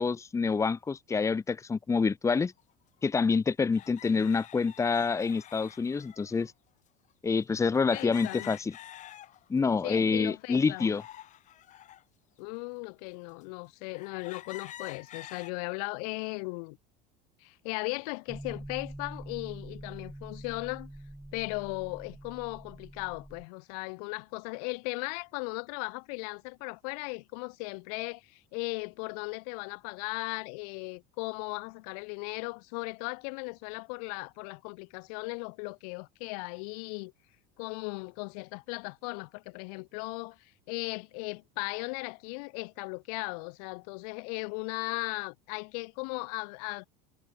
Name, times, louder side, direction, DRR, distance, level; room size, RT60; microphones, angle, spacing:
voice 1, 0.0-2.5 3.0-6.5 7.2-8.7 9.5-11.0, left 5 dB, 15° left, 1.7 m, -27 dB
sound 1, 2.6-2.7 3.7-6.5 7.9-9.6 10.1-12.0 12.7-12.8 13.4-13.5 13.9-15.5, left 12 dB, 40° left, 3.5 m, -48 dB
voice 2, 7.9-8.5 9.8-10.9 12.4-16.8 17.4-20.9 21.3-37.1 37.6-46.9, left 33 dB, 75° left, 4.4 m, -37 dB
sound 2, 18.3-23.4, right 1 dB, 5° right, 2.7 m, -45 dB
cardioid pair, 140°, 20 cm